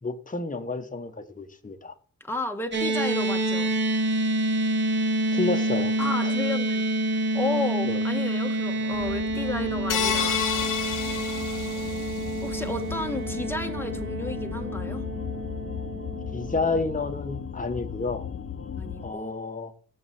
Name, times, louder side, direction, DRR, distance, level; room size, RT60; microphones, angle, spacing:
voice 1, 0.0-1.9 5.3-5.9 6.2-6.3 7.8-8.0 16.3-18.3 19.0-19.7, left 3 dB, 25° left, 1.2 m, -30 dB
voice 2, 2.2-3.7 6.0-6.8 7.3-10.5 12.4-15.0 18.7-19.5, left 2 dB, 5° left, 1.4 m, -32 dB
sound 1, 2.7-17.1, right 1 dB, 35° right, 2.0 m, -28 dB
sound 2, 8.9-19.1, left 7 dB, 45° left, 0.9 m, -36 dB
sound 3, 9.9-12.4, left 8 dB, 85° left, 1.3 m, -29 dB
7.2 x 4.7 x 6.7 m
cardioid pair, 50°, 31 cm